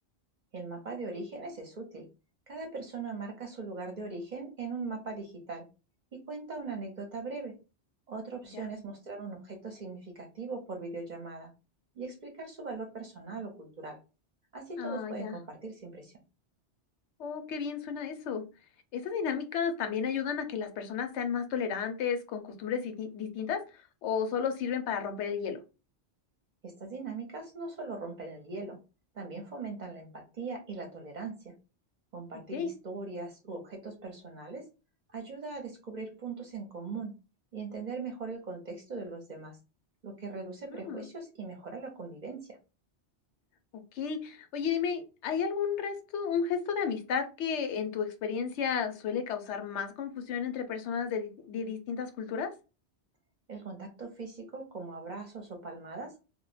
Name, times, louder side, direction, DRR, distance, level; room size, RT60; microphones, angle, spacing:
voice 1, 0.5-2.1 2.5-5.7 6.1-7.5 8.1-11.5 12.0-14.0 14.5-16.1 26.6-28.8 29.1-31.5 32.1-34.7 35.1-37.1 37.5-39.6 40.0-42.6 53.5-56.1, right 3 dB, 50° right, 3 dB, 0.6 m, -40 dB
voice 2, 14.8-15.3 17.2-18.4 18.9-23.6 24.0-25.6 32.5-32.7 40.7-41.1 43.9-52.5, left 7 dB, 85° left, 8 dB, 0.9 m, -33 dB
2.2 x 2.0 x 3.0 m, 0.31 s
omnidirectional pair, 1.1 m